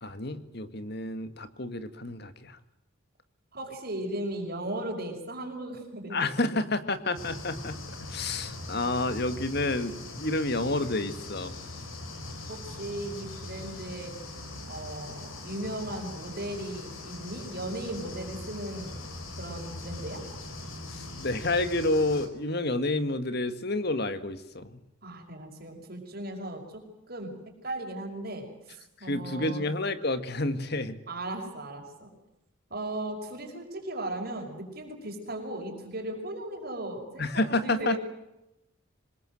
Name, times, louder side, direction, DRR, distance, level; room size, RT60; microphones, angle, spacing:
voice 1, 0.0-2.6 6.1-7.8 8.1-11.5 20.9-24.8 29.0-31.0 37.2-38.0, left 2 dB, 50° left, 11 dB, 2.0 m, -29 dB
voice 2, 3.5-6.2 12.5-14.1 14.7-19.0 19.4-20.2 25.0-29.6 31.1-32.1 32.7-38.0, right 1 dB, 50° right, 2 dB, 5.7 m, -37 dB
sound 1, 7.1-22.3, left 2 dB, 85° left, 4.9 m, -41 dB
26.0 x 21.5 x 7.8 m, 0.89 s
head